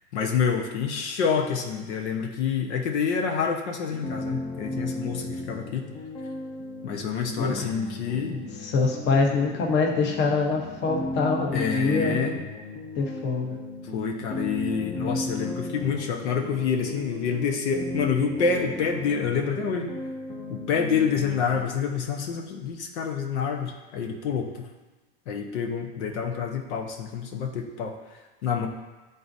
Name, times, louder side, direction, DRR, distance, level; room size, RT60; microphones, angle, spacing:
voice 1, 0.1-5.9 6.8-8.3 11.5-12.3 13.9-19.9 20.5-24.7 25.3-27.9 28.4-28.7, left 6 dB, 90° left, 2 dB, 1.0 m, -27 dB
sound 1, 3.9-21.6, left 1 dB, 15° left, 0.6 m, -35 dB
voice 2, 7.4-7.7 8.3-12.4 13.0-13.6, left 4 dB, 30° left, 0 dB, 1.0 m, -25 dB
10.5 x 3.9 x 2.7 m, 1.2 s
supercardioid pair, 140°, 34 cm